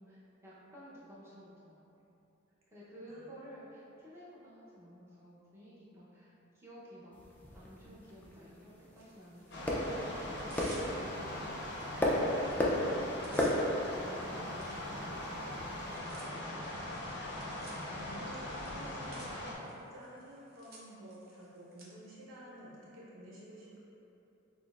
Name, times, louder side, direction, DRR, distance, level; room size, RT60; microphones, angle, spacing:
voice 1, 0.0-1.8 2.7-7.2 7.5-11.7 13.2-16.6, equal, 15° right, -9 dB, 0.7 m, -53 dB
sound 1, 7.1-16.0, left 1 dB, 10° left, 0.3 m, -36 dB
Tearing, 8.9-9.8 10.2-11.3 11.8-11.9 12.2-12.5 12.8-21.9, right 2 dB, 50° right, 0.6 m, -56 dB
sound 2, 9.5-19.5, left 1 dB, 60° left, 0.6 m, -41 dB
voice 2, 17.6-23.8, equal, 80° right, -7 dB, 1.0 m, -51 dB
5.9 x 2.0 x 2.4 m, 2.9 s
head